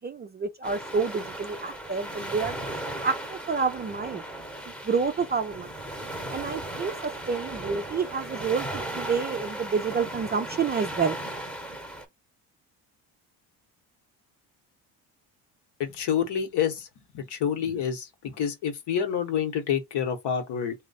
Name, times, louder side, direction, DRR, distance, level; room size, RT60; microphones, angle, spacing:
voice 1, 0.0-2.7 3.0-4.2 4.8-5.7 6.3-8.7 8.9-11.2, right 5 dB, 25° right, 0.4 m, -28 dB
sound 1, 0.6-12.1, right 1 dB, 5° left, 1.0 m, -36 dB
voice 2, 15.8-16.9 17.1-20.7, left 8 dB, 60° left, 1.1 m, -28 dB
3.0 x 2.2 x 4.0 m
supercardioid pair, 70°, 46 cm